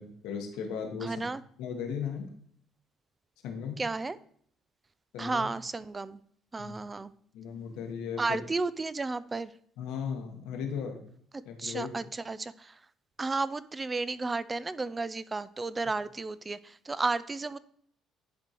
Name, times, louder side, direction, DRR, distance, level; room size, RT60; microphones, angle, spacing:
voice 1, 0.0-1.1 1.6-2.3 3.4-3.8 5.1-5.5 6.6-6.7 7.3-8.4 9.8-11.0 11.4-11.9, left 6 dB, 85° left, 3 dB, 1.2 m, -36 dB
voice 2, 1.0-1.4 3.8-4.2 5.2-6.2 6.5-7.1 8.2-9.5 11.3-12.8 13.2-17.6, right 3 dB, 25° right, 16 dB, 0.3 m, -33 dB
10.5 x 3.8 x 3.0 m, 0.62 s
supercardioid pair, 85°, 0 cm